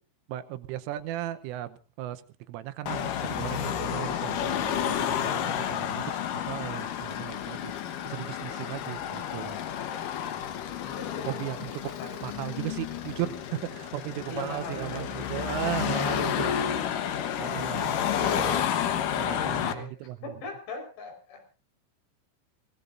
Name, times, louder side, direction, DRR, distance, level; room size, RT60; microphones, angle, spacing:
voice 1, 0.3-2.2 2.5-7.7 8.1-9.6 11.3-11.8 12.2-13.3 13.7-16.7 17.4-20.2, right 13 dB, 85° right, 11 dB, 3.5 m, -36 dB
Car passing by / Traffic noise roadway noise / Engine, 2.9-19.7, left 9 dB, 80° left, 1.9 m, -31 dB
voice 2, 5.2-5.6 10.8-11.1 11.6-12.5 14.3-16.5 18.9-21.4, left 3 dB, 60° left, 4 dB, 6.8 m, -41 dB
26.0 x 17.5 x 2.6 m, 0.36 s
omnidirectional pair, 5.7 m